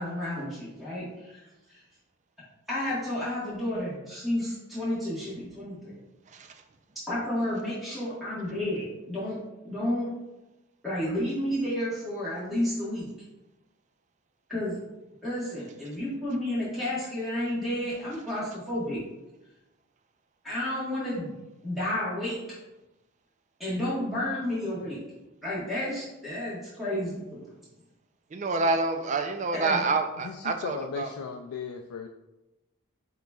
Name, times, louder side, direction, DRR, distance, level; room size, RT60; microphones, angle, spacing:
voice 1, 0.0-1.4 1.7-1.8 2.7-5.9 7.1-9.4 9.6-10.1 10.8-13.1 14.5-14.8 15.2-19.0 20.4-21.3 21.6-22.4 23.6-25.0 25.4-27.4 29.5-29.8, left 1 dB, ahead, -10 dB, 1.4 m, -31 dB
voice 2, 28.3-31.1, right 3 dB, 35° right, 6 dB, 0.3 m, -28 dB
voice 3, 30.6-32.1, left 6 dB, 85° left, 3 dB, 0.3 m, -36 dB
7.7 x 3.0 x 2.3 m, 1.0 s
head